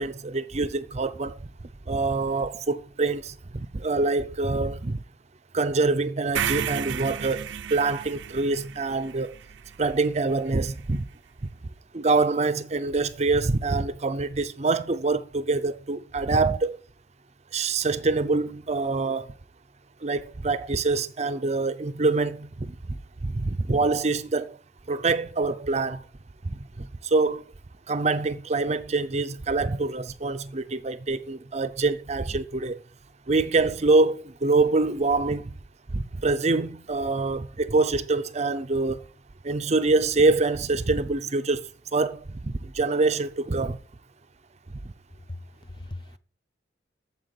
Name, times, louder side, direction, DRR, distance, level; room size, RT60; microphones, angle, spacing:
voice 1, 0.0-1.4 1.9-5.0 5.5-7.5 7.7-9.3 9.8-11.1 11.9-16.8 17.5-19.3 20.0-22.8 23.2-24.6 24.9-26.0 26.4-27.4 27.9-32.8 33.3-35.6 35.9-39.0 39.4-41.6 41.9-43.8 44.8-44.9, right 3 dB, 35° right, 0.6 m, -25 dB
sound 1, 6.3-10.5, right 9 dB, 75° right, 0.4 m, -33 dB
voice 2, 45.3-46.2, left 2 dB, 25° left, 0.6 m, -40 dB
9.1 x 7.3 x 7.7 m
head